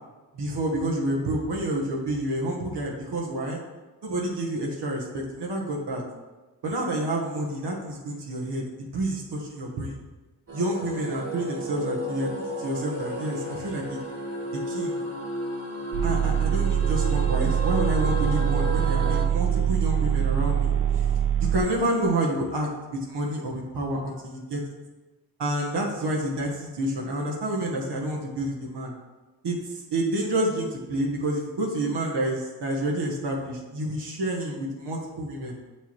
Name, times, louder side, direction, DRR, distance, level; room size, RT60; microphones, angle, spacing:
voice 1, 0.3-3.6 4.0-6.0 6.6-10.0 10.5-12.3 12.6-14.0 14.7-15.0 16.0-20.7 21.5-24.6 25.4-28.9 29.4-35.5, right 1 dB, 75° right, -1 dB, 1.1 m, -29 dB
sound 1, 10.5-19.2, equal, 35° right, 1.4 m, -33 dB
sound 2, 15.9-21.6, right 10 dB, 55° right, 0.7 m, -24 dB
6.9 x 4.6 x 3.0 m, 1.2 s
cardioid pair, 45°, 41 cm